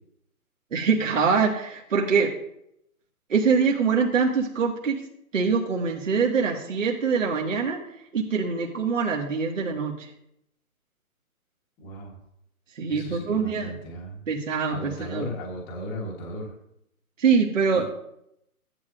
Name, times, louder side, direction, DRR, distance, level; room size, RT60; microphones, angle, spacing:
voice 1, 0.7-2.3 3.3-5.0 5.3-7.8 8.1-10.1 12.8-13.7 14.3-15.3 17.2-17.9, right 5 dB, 55° right, -1 dB, 1.9 m, -24 dB
voice 2, 11.8-12.2 12.9-14.2 14.7-16.5 17.7-17.9, equal, 10° left, -1 dB, 1.2 m, -36 dB
15.5 x 10.5 x 2.6 m, 0.77 s
hypercardioid pair, 165°, 44 cm